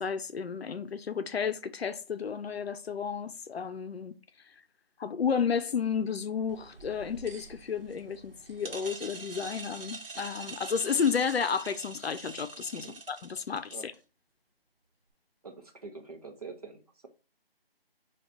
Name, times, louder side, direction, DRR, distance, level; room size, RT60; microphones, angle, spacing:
voice 1, 0.0-4.2 5.0-13.9, left 6 dB, 85° left, 0.5 m, -32 dB
sound 1, 6.5-14.0, right 3 dB, 70° right, 1.0 m, -45 dB
voice 2, 15.4-17.1, right 4 dB, 40° right, 0.6 m, -45 dB
4.7 x 2.3 x 3.9 m
figure-of-eight pair, 170°, 30 cm